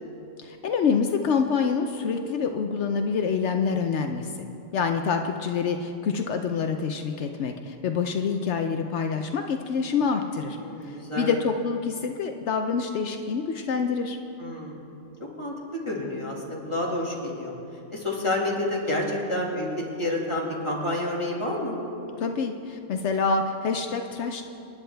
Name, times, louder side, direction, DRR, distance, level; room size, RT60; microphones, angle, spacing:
voice 1, 0.4-4.3 4.7-10.6 10.8-14.2 22.2-24.4, left 5 dB, 75° left, 5 dB, 1.0 m, -26 dB
voice 2, 10.6-11.3 14.4-14.8 15.4-17.6 17.9-21.8, left 1 dB, 25° left, -3 dB, 2.2 m, -29 dB
27.5 x 10.0 x 3.4 m, 2.8 s
omnidirectional pair, 1.2 m